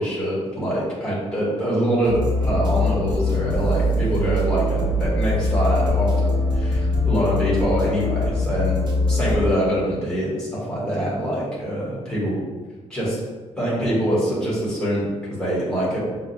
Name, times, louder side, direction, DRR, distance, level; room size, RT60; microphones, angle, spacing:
voice 1, 0.0-12.4 12.9-13.2 13.6-16.0, right 1 dB, 5° left, -7 dB, 1.1 m, -24 dB
sound 1, 2.0-9.4, left 2 dB, 40° right, 0.6 m, -22 dB
5.3 x 2.2 x 2.7 m, 1.4 s
wide cardioid pair, 170°, 12 cm